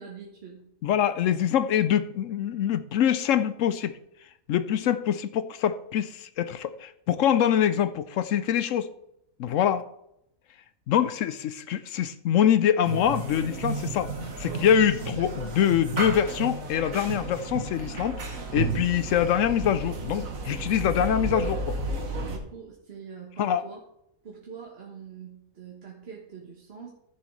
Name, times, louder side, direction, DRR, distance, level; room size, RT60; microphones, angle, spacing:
voice 1, 0.0-0.7 22.2-23.8 24.2-26.9, right 6 dB, 45° right, -2 dB, 1.5 m, -44 dB
voice 2, 0.8-4.0 4.5-8.9 9.4-9.8 10.9-14.1 14.4-21.8 23.4-23.6, left 9 dB, 70° left, 13 dB, 0.9 m, -24 dB
sound 1, 12.8-22.4, right 3 dB, 70° right, 1.7 m, -32 dB
14.0 x 7.1 x 3.2 m, 0.79 s
omnidirectional pair, 1.5 m